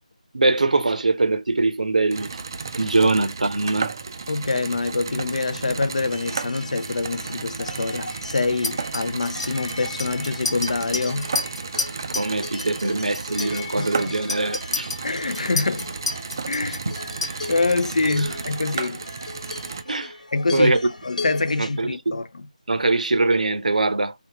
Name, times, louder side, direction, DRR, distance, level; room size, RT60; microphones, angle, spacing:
voice 1, 0.3-2.4 2.7-3.9 12.1-14.9 16.6-16.9 18.2-18.3 19.9-20.1 20.5-20.8 21.6-22.2 22.7-24.1, right 2 dB, 70° right, 0.7 m, -22 dB
sound 1, 2.1-19.8, right 5 dB, 30° right, 0.3 m, -34 dB
voice 2, 4.3-11.3 13.8-14.1 15.0-15.9 16.5-16.8 17.5-19.0 20.3-20.7 21.0-22.4, left 3 dB, 60° left, 0.4 m, -25 dB
sound 2, 6.1-21.8, left 3 dB, 80° left, 0.8 m, -38 dB
Chink clink, 8.6-12.3 12.6-12.9 13.1-17.7, left 3 dB, 35° left, 0.9 m, -31 dB
3.4 x 2.3 x 2.7 m
figure-of-eight pair, 165°, 4 cm